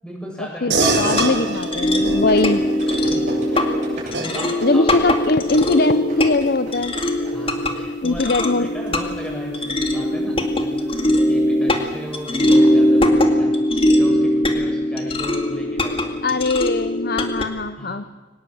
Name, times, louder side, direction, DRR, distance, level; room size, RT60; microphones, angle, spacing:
voice 1, 0.0-1.5 3.1-3.7 4.1-5.1 7.3-16.4 17.8-18.0, equal, 5° left, -2 dB, 7.9 m, -36 dB
voice 2, 0.6-2.6 4.6-7.0 8.0-8.7 16.2-18.0, left 2 dB, 55° left, 11 dB, 0.9 m, -21 dB
sound 1, 0.7-10.6, right 3 dB, 70° right, 4.7 m, -28 dB
sound 2, 0.8-17.4, left 1 dB, 30° left, 2.3 m, -21 dB
sound 3, 2.3-7.3 7.6-7.7, right 2 dB, 40° right, 7.5 m, -37 dB
24.0 x 19.5 x 7.9 m, 1.2 s
head